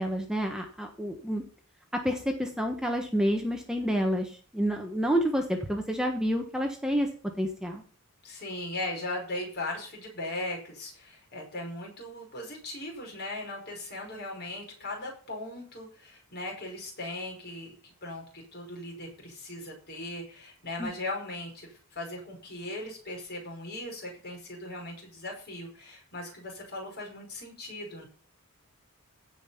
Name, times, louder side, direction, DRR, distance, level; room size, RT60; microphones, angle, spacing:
voice 1, 0.0-1.4 1.9-7.1 7.4-7.8 20.8-20.9, equal, 5° right, 2 dB, 1.3 m, -29 dB
voice 2, 8.2-28.1, left 2 dB, 50° left, 0 dB, 5.4 m, -38 dB
16.5 x 5.5 x 5.7 m, 0.42 s
head